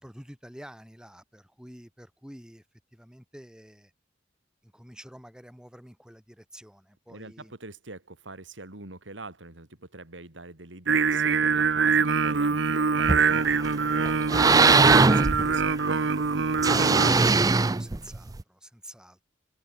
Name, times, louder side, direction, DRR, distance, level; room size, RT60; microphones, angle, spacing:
voice 1, 0.0-2.6 2.9-3.9 4.6-7.5 16.7-19.2, equal, 5° right, 4.5 m, -48 dB
voice 2, 7.1-15.7, right 2 dB, 85° right, 3.2 m, -44 dB
Singing, 10.9-17.1, right 5 dB, 70° right, 0.8 m, -24 dB
sound 1, 13.0-13.7 14.1-15.9 16.6-18.4, right 4 dB, 20° right, 0.4 m, -20 dB
head